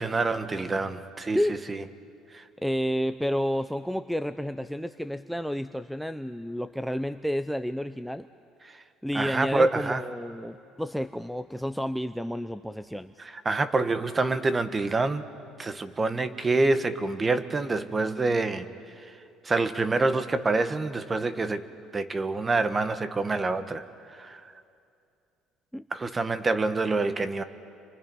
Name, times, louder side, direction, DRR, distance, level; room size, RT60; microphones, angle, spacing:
voice 1, 0.0-1.8 2.3-2.4 9.1-10.0 13.2-15.3 15.6-18.7 19.0-19.1 19.4-21.7 21.9-24.5 25.9-27.4, right 3 dB, 25° right, 10 dB, 1.3 m, -27 dB
voice 2, 2.6-8.3 9.0-13.1 25.7-25.9, equal, ahead, 9 dB, 0.6 m, -30 dB
29.5 x 24.5 x 5.5 m, 2.5 s
supercardioid pair, 85°, 0 cm